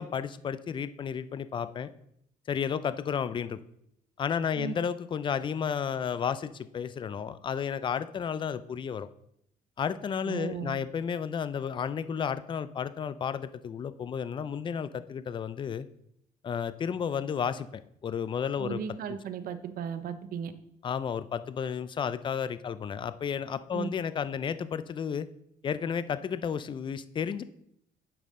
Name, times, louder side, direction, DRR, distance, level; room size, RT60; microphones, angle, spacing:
voice 1, 0.0-1.9 2.5-3.6 4.2-9.1 9.8-15.9 16.4-17.7 18.0-18.8 20.8-25.3 25.6-27.4, left 7 dB, 30° left, 14 dB, 0.4 m, -32 dB
voice 2, 10.2-10.7 18.6-20.5 23.7-23.9, right 7 dB, 60° right, 10 dB, 0.8 m, -36 dB
9.2 x 5.5 x 3.7 m, 0.75 s
cardioid pair, 110°, 17 cm